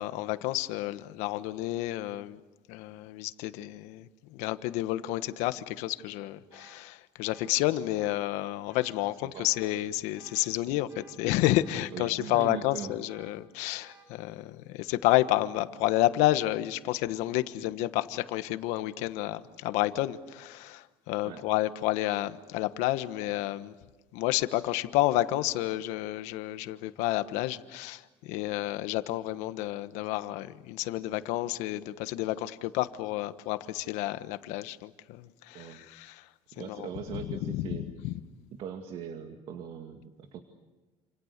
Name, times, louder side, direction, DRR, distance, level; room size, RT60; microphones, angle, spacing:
voice 1, 0.0-2.4 2.7-23.7 24.1-36.2 36.6-37.2 37.5-37.8 38.0-38.1, left 16 dB, 75° left, 11 dB, 1.3 m, -30 dB
sound 1, 6.5-6.8 7.2-7.5 8.0-8.2 8.7-9.0 9.4-9.7 10.2-10.4 10.9-11.2 11.6-11.9 12.3-12.6 13.1-13.3 13.8-14.1, right 3 dB, 25° right, 4.9 m, -56 dB
voice 2, 11.9-12.9 21.2-21.4 35.5-35.8 36.5-37.9 38.5-40.4, right 7 dB, 50° right, 6 dB, 2.2 m, -40 dB
29.0 x 28.0 x 6.8 m, 1.2 s
cardioid pair, 150°, 12 cm